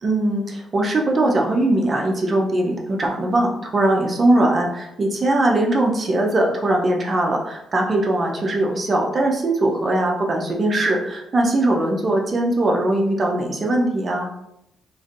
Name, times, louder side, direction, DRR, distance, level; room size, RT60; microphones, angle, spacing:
voice 1, 0.0-14.3, right 1 dB, 40° right, 0 dB, 0.6 m, -20 dB
3.1 x 2.5 x 2.5 m, 0.81 s
cardioid pair, 90°, 0 cm